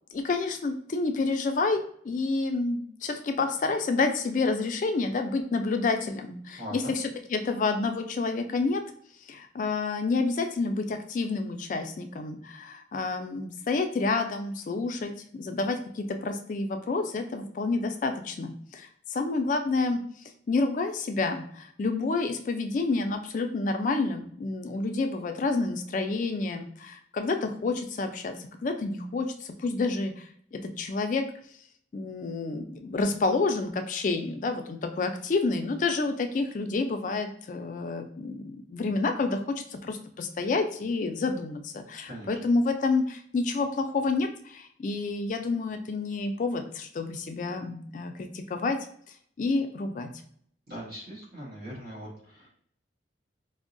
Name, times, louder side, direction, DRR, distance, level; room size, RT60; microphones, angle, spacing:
voice 1, 0.1-8.8 9.3-20.0 20.5-30.2 30.5-31.2 31.9-48.8 49.4-50.1, left 3 dB, 45° left, 6 dB, 0.3 m, -29 dB
voice 2, 6.6-6.9 42.1-42.3 50.7-52.5, equal, 55° right, -7 dB, 1.1 m, -40 dB
4.4 x 2.0 x 2.5 m, 0.62 s
head